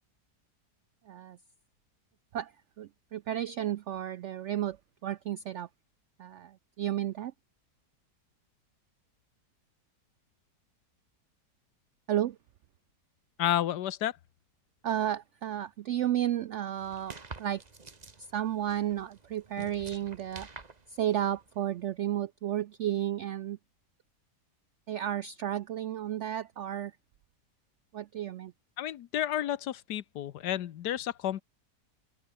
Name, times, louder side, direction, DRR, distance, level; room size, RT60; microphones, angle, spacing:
voice 1, 1.1-1.4 2.3-4.8 5.0-5.7 6.2-7.3 12.1-12.4 14.8-17.6 18.2-20.5 20.9-23.6 24.9-26.9 27.9-28.5, right 11 dB, 75° right, 0.6 m, -32 dB
voice 2, 13.4-14.2 28.8-31.4, left 11 dB, 80° left, 1.4 m, -31 dB
sound 1, 16.8-21.8, right 4 dB, 25° right, 1.5 m, -49 dB
omnidirectional pair, 1.8 m